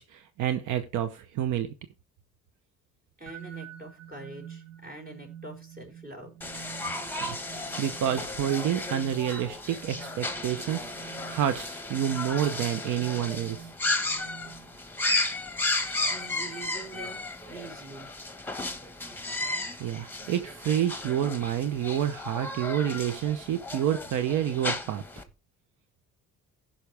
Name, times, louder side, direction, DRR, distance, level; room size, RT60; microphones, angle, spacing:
voice 1, 0.0-1.7 7.2-7.4 7.8-13.7 19.8-25.0, right 10 dB, 85° right, 0.9 m, -29 dB
voice 2, 3.2-6.4 16.1-18.1, right 2 dB, 30° right, 5.2 m, -45 dB
sound 1, 3.3-15.0, right 9 dB, 55° right, 1.6 m, -48 dB
sound 2, 6.4-25.2, left 2 dB, 5° left, 1.4 m, -34 dB
15.0 x 5.8 x 3.4 m
cardioid pair, 90°, 30 cm